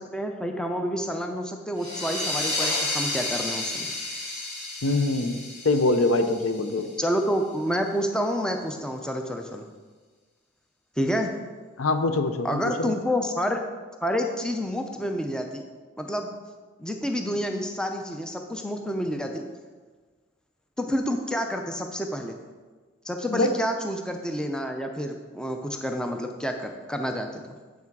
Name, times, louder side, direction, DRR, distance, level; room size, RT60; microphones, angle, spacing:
voice 1, 0.0-3.9 7.0-9.7 11.0-11.3 12.4-13.6 14.0-15.6 16.0-16.3 16.8-19.4 20.8-22.3 23.0-27.6, equal, 5° left, 4 dB, 0.5 m, -29 dB
sound 1, 1.8-7.1, left 2 dB, 35° left, 2.2 m, -31 dB
voice 2, 4.8-6.9 11.8-13.0 23.3-23.5, left 2 dB, 80° left, 9 dB, 0.6 m, -24 dB
7.4 x 5.9 x 4.6 m, 1.4 s
head